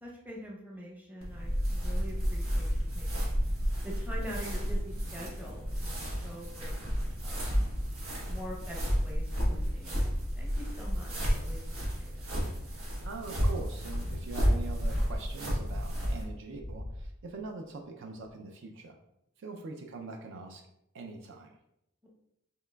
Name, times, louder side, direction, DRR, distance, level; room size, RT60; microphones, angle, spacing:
voice 1, 0.0-3.3 3.8-6.8 7.2-7.6 8.2-12.3 22.0-22.1, equal, 10° right, -3 dB, 0.8 m, -45 dB
sound 1, 1.2-16.2, equal, 90° right, 1.2 m, -31 dB
sound 2, 4.6-4.7 5.2-5.4 5.9-6.3 7.7-7.8 8.6-9.3 9.8-12.7 13.4-16.2 16.5-17.4 18.3-18.4, left 1 dB, 10° left, 0.3 m, -44 dB
voice 2, 13.0-19.0 19.4-20.6 20.9-21.5, right 3 dB, 60° right, 3 dB, 0.4 m, -43 dB
5.6 x 2.9 x 2.2 m, 0.81 s
head